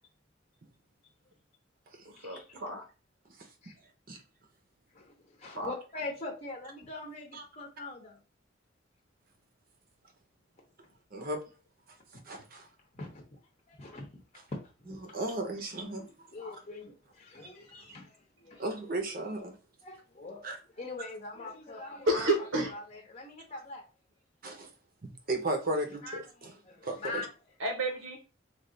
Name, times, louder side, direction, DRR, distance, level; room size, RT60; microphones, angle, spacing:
voice 1, 2.0-2.8 5.5-5.7 22.1-22.7 27.6-28.2, right 1 dB, 75° right, 1 dB, 1.1 m, -30 dB
voice 2, 5.4-8.2 13.0-13.2 13.7-14.2 14.9-15.0 16.0-18.1 18.4-18.6 19.8-20.5 20.8-22.3 22.7-23.8 26.0-26.2 26.6-27.3, left 3 dB, 35° left, 1 dB, 0.8 m, -42 dB
voice 3, 11.1-11.4 12.3-12.6 15.0-16.0 17.7-17.8 18.6-19.6 20.4-20.6 23.5-23.6 24.4-24.7 25.3-26.5 26.8-27.3, right 1 dB, 45° right, 4 dB, 0.8 m, -35 dB
3.3 x 2.4 x 3.8 m, 0.33 s
head